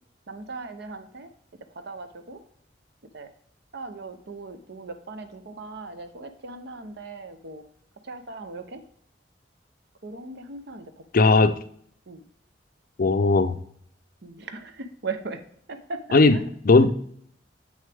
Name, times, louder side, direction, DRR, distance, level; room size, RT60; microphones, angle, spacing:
voice 1, 0.3-1.3 1.7-2.4 3.1-3.3 3.7-7.6 8.0-8.8 10.0-11.3 12.1-12.2 14.2-15.4 15.7-16.4 16.7-16.9, right 3 dB, 65° right, 0.8 m, -38 dB
voice 2, 11.1-11.5 13.0-13.6 16.1-16.4 16.7-16.9, left 3 dB, 50° left, 0.5 m, -17 dB
8.0 x 6.4 x 3.4 m
head